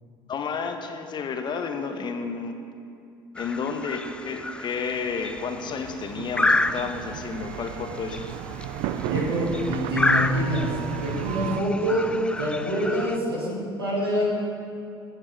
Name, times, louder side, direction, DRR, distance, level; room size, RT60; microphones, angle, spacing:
voice 1, 0.3-2.6 3.3-8.2, left 5 dB, 40° left, 6 dB, 1.0 m, -31 dB
sound 1, 3.4-13.2, left 2 dB, 10° left, 0.3 m, -30 dB
sound 2, 4.9-11.6, right 10 dB, 60° right, 0.5 m, -34 dB
voice 2, 9.0-10.7 11.0-12.1 12.4-14.3, equal, 90° right, -5 dB, 2.3 m, -26 dB
16.5 x 7.2 x 3.4 m, 2.5 s
figure-of-eight pair, 65°, 12 cm